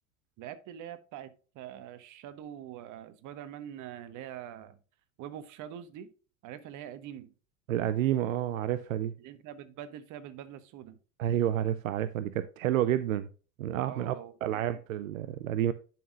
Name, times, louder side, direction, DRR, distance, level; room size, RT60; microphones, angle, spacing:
voice 1, 0.4-4.8 5.2-6.1 6.4-7.3 9.2-11.0 13.8-14.7, right 10 dB, 50° right, 1.3 m, -44 dB
voice 2, 7.7-9.1 11.2-13.3 13.6-14.1 14.4-15.7, right 11 dB, 80° right, 0.7 m, -29 dB
11.0 x 5.9 x 2.5 m
hypercardioid pair, 85°, 40 cm